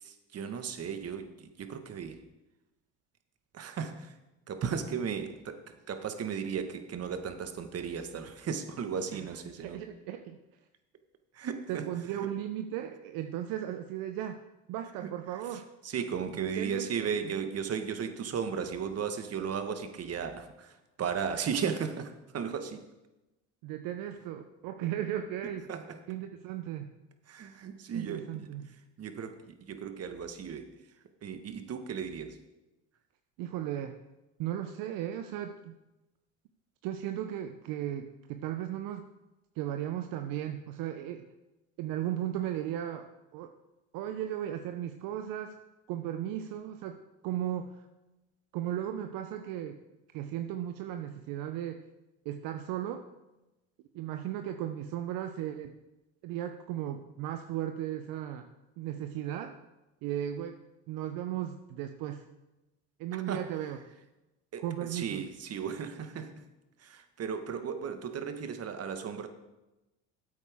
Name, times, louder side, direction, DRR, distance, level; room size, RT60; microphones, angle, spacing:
voice 1, 0.0-2.2 3.5-4.1 4.5-5.6 5.9-9.8 11.3-11.9 12.1-12.3 15.0-15.1 15.8-22.8 25.7-26.0 27.3-28.5 29.0-30.7 31.2-32.4 63.3-63.4 64.5-64.6 64.9-66.3 66.8-69.3, right 7 dB, 40° right, 8 dB, 1.4 m, -35 dB
voice 2, 9.1-10.4 11.7-14.4 14.7-15.7 16.4-17.3 23.6-25.7 26.1-26.9 27.9-28.7 33.4-34.0 34.4-35.8 36.8-39.1 39.6-41.2 41.8-43.5 43.9-45.6 45.9-47.0 47.2-47.8 48.5-49.8 50.1-51.8 52.2-53.0 53.9-55.7 56.2-58.5 58.8-59.6 60.0-60.6 60.9-62.2 63.0-63.8 64.6-65.2, right 11 dB, 65° right, 7 dB, 0.8 m, -36 dB
13.5 x 8.2 x 3.6 m, 1.0 s
hypercardioid pair, 75°, 36 cm